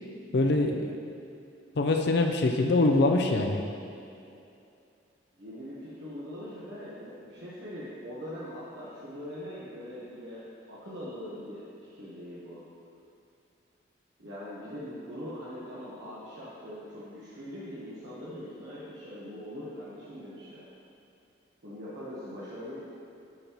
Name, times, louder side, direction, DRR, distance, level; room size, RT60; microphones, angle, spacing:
voice 1, 0.3-0.9 1.8-3.6, left 2 dB, 60° left, 3 dB, 0.5 m, -24 dB
voice 2, 5.4-12.6 14.2-20.7 21.6-22.8, equal, 70° right, -9 dB, 1.2 m, -42 dB
11.5 x 5.3 x 3.0 m, 2.6 s
head